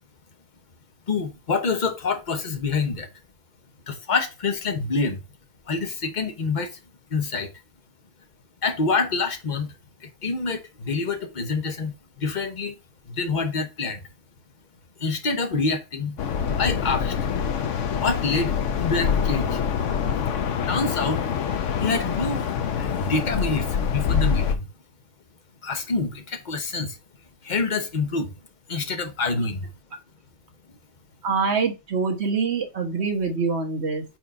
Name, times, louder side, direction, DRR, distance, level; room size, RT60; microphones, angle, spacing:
voice 1, 1.1-3.1 3.9-5.2 5.7-6.8 7.1-7.5 8.6-9.7 10.0-12.8 13.1-14.0 15.0-16.2 16.6-17.2 18.0-18.5 18.8-19.6 20.7-21.2 21.8-22.5 22.8-24.6 25.6-27.0 27.4-28.3 28.7-29.7, left 4 dB, 35° left, 1.0 m, -26 dB
sound 1, 16.2-24.5, left 7 dB, 65° left, 1.1 m, -25 dB
voice 2, 31.2-34.0, right 5 dB, 50° right, 1.5 m, -25 dB
4.5 x 4.2 x 5.3 m
omnidirectional pair, 1.4 m